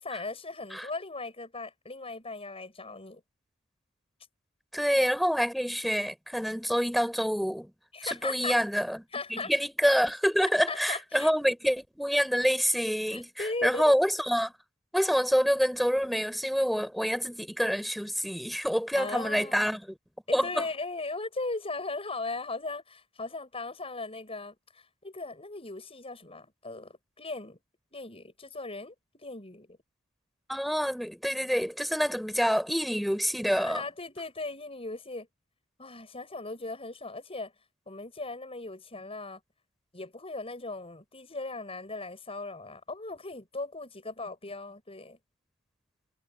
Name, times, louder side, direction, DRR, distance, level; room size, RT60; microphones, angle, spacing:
voice 1, 0.0-3.2 7.9-8.6 9.1-9.5 10.7-11.6 13.1-13.9 18.9-19.7 20.3-27.6 27.9-29.8 33.5-35.3 35.8-37.5 37.9-39.4 39.9-45.2, left 3 dB, 25° left, 7.2 m, -38 dB
voice 2, 4.7-7.7 8.0-14.5 14.9-20.0 20.3-20.7 30.5-33.8, equal, ahead, 7.9 m, -27 dB
head